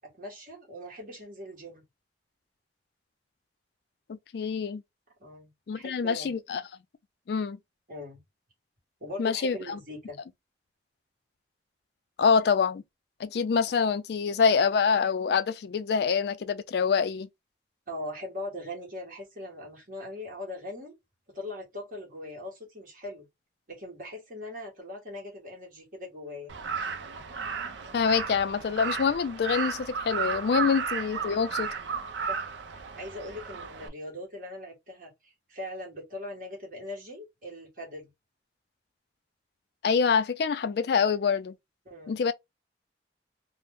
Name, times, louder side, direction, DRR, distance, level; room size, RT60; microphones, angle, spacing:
voice 1, 0.0-1.8 5.2-6.3 7.9-8.2 9.0-10.2 17.9-20.9 21.3-23.3 23.7-26.5 32.3-38.1 41.8-42.2, left 1 dB, 50° right, 1.2 m, -40 dB
voice 2, 4.1-4.8 5.7-6.6 7.3-7.6 9.2-9.8 12.2-12.8 13.2-17.3 27.9-31.7 39.8-41.5 42.1-42.3, left 6 dB, 65° left, 0.3 m, -26 dB
Crow, 26.5-33.9, right 6 dB, 90° right, 0.5 m, -34 dB
2.6 x 2.0 x 3.4 m
head